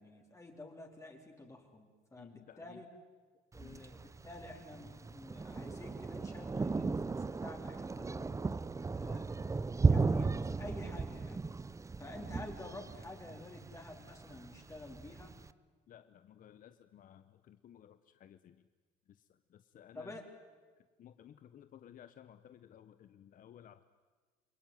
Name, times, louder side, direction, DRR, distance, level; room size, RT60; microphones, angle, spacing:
voice 1, 0.0-2.9 3.5-8.4 8.9-9.2 9.9-11.4 12.0-15.3 19.9-20.2, left 2 dB, 15° left, 1 dB, 4.3 m, -50 dB
voice 2, 2.2-2.8 3.6-3.8 12.2-12.5 15.9-18.7 19.1-20.2 21.0-23.8, left 10 dB, 55° left, 11 dB, 1.0 m, -57 dB
Thunder, 3.5-15.5, right 4 dB, 20° right, 0.7 m, -36 dB
28.0 x 22.0 x 9.4 m, 1.4 s
cardioid pair, 110°, 17 cm